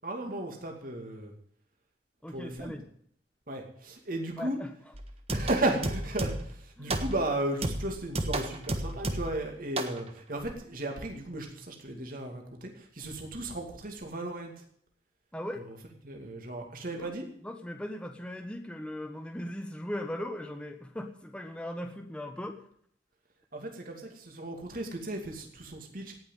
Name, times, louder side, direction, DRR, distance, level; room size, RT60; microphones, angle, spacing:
voice 1, 0.0-1.3 2.3-2.8 3.5-4.6 5.3-14.5 16.0-17.3 23.5-26.2, right 1 dB, 55° right, 2 dB, 2.5 m, -35 dB
voice 2, 2.2-2.9 4.4-4.7 5.3-5.5 6.8-7.0 15.3-15.6 16.9-17.1 17.4-22.6, left 1 dB, 5° left, 4 dB, 1.2 m, -38 dB
sound 1, 4.9-6.6 6.9-7.3 7.6-9.4 9.8-10.0, right 1 dB, 35° right, 1.4 m, -32 dB
18.0 x 6.1 x 9.2 m, 0.64 s
head